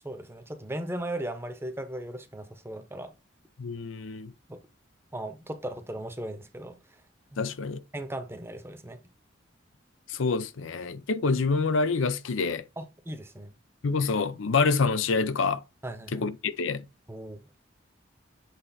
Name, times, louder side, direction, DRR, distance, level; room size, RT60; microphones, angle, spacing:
voice 1, 0.0-3.1 4.5-4.6 5.1-6.8 7.3-7.4 7.9-9.0 12.8-13.5 15.8-16.3 17.1-17.4, right 1 dB, 10° right, 0.8 m, -37 dB
voice 2, 3.6-4.3 7.4-7.8 10.1-12.7 13.8-15.6 16.1-16.8, left 4 dB, 80° left, 0.6 m, -27 dB
8.0 x 3.2 x 4.1 m
head